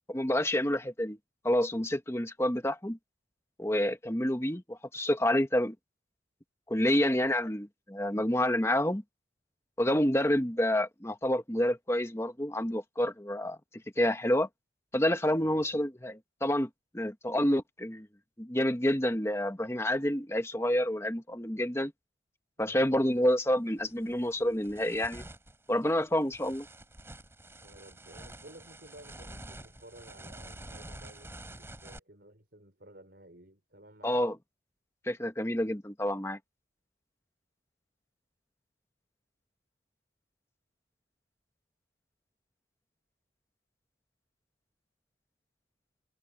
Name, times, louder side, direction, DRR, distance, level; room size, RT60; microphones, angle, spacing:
voice 1, 0.1-1.2 1.4-3.0 3.6-5.7 6.7-9.0 9.8-13.6 14.0-14.5 14.9-16.7 16.9-18.1 18.4-21.9 22.6-25.2 25.7-26.7 34.0-34.4 35.0-36.4, left 1 dB, 15° left, 1.4 m, -28 dB
voice 2, 15.4-15.8 22.6-23.0 27.6-34.2, right 1 dB, 55° right, 5.5 m, -54 dB
sound 1, 23.1-23.3 23.8-32.0, right 1 dB, 15° right, 4.6 m, -48 dB
head